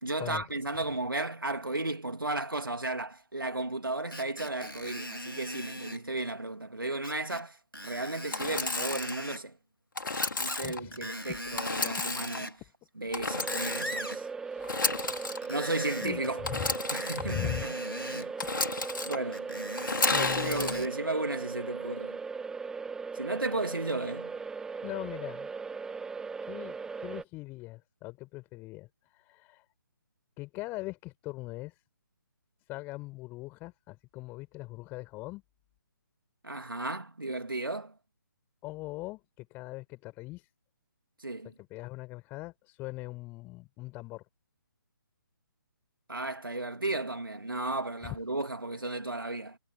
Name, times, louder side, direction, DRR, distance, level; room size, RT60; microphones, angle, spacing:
voice 1, 0.0-7.6 7.8-9.6 10.4-12.5 13.0-14.3 15.5-16.4 16.9-17.7 18.0-18.3 19.0-19.5 20.1-22.2 23.1-24.3 36.4-37.9 41.2-41.5 46.1-49.6, right 2 dB, 80° right, 3.1 m, -34 dB
Screech, 4.1-6.0 7.0-7.4 7.7-9.4 10.1-10.6 10.9-12.6 13.1-14.2 15.3-16.3 16.9-18.3 19.3-20.9 21.5-21.6, equal, 90° left, 4.2 m, -40 dB
Engine / Sawing, 8.3-9.2 10.0-10.8 11.6-12.4 13.1-14.0 14.6-15.4 16.4-17.2 18.4-19.2 19.8-20.7, left 3 dB, 70° left, 3.1 m, -32 dB
voice 2, 10.6-11.1 11.9-12.0 14.4-15.6 16.0-16.2 16.5-16.6 17.1-17.7 20.1-20.8 24.8-25.5 26.4-29.6 30.4-31.8 32.7-35.4 38.6-40.5 41.4-44.2 48.0-48.2, left 21 dB, 15° left, 5.5 m, -41 dB
sound 1, 13.3-27.2, right 5 dB, 5° right, 2.6 m, -38 dB
figure-of-eight pair, 140°, 11 cm